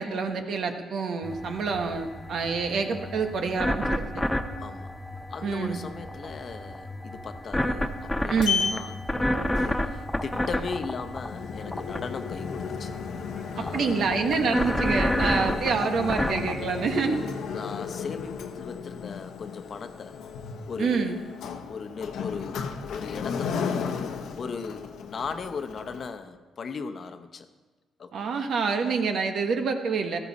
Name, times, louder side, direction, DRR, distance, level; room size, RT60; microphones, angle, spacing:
voice 1, 0.0-4.0 5.4-5.8 8.3-8.6 13.6-17.2 20.8-21.2 28.1-30.2, right 5 dB, 65° right, 5 dB, 1.4 m, -27 dB
sound 1, 1.2-17.1, left 1 dB, 10° left, 0.8 m, -31 dB
voice 2, 4.6-4.9 5.3-12.9 13.5-14.0 17.4-20.2 20.7-21.3 21.6-24.0 24.3-27.5 28.0-28.2, left 5 dB, 50° left, 8 dB, 0.9 m, -38 dB
Sliding door, 7.8-26.1, left 6 dB, 75° left, 1.0 m, -35 dB
13.5 x 13.5 x 4.2 m, 1.3 s
cardioid pair, 90°, 0 cm